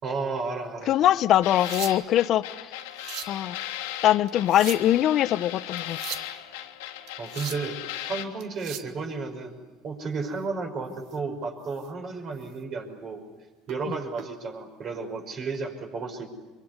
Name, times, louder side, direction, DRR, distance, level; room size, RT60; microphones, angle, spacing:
voice 1, 0.0-0.9 7.2-9.6 9.8-13.2 13.7-16.3, right 4 dB, 45° right, 4 dB, 5.7 m, -33 dB
voice 2, 0.9-2.8 3.3-3.6 4.0-6.0, left 12 dB, 55° left, 15 dB, 0.8 m, -22 dB
sound 1, 1.4-8.2, left 12 dB, 80° left, 2.0 m, -37 dB
sound 2, 1.4-2.3 2.8-3.4 4.3-5.0 5.8-6.3 7.1-7.7 8.4-8.9 11.0-11.2 11.7-11.9 12.4-12.5 13.7-14.3 15.4-15.6, right 10 dB, 60° right, 1.4 m, -39 dB
24.0 x 23.0 x 9.7 m, 1.3 s
supercardioid pair, 90°, 0 cm